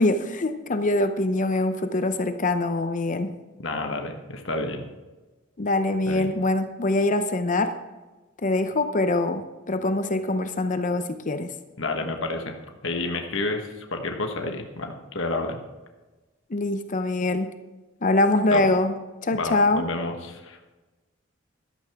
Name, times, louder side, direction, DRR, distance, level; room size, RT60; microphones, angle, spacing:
voice 1, 0.0-3.3 5.6-7.7 8.4-11.5 16.5-17.5 18.0-19.0 19.2-19.8, left 2 dB, 40° left, 9 dB, 0.7 m, -24 dB
voice 2, 3.6-4.8 6.1-6.3 11.8-12.5 12.8-15.6 18.5-18.6 19.3-20.6, left 2 dB, 65° left, 4 dB, 1.3 m, -30 dB
14.5 x 12.5 x 3.5 m, 1.2 s
head